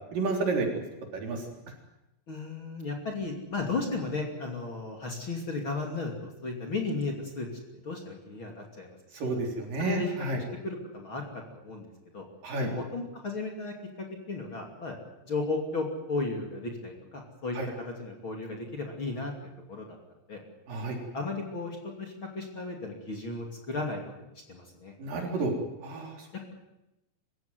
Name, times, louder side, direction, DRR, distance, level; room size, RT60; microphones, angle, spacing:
voice 1, 0.1-0.7 1.1-1.4 9.1-10.4 12.4-12.7 17.6-17.7 20.7-21.0 25.0-25.5 25.8-26.1, right 3 dB, 60° right, 1 dB, 5.3 m, -30 dB
voice 2, 2.3-7.5 7.7-8.9 9.2-9.3 9.8-12.2 12.6-15.0 15.2-19.3 19.7-20.0 20.3-20.4 21.1-24.9, left 3 dB, 35° left, 1 dB, 3.1 m, -35 dB
24.5 x 15.0 x 9.4 m, 0.92 s
omnidirectional pair, 4.4 m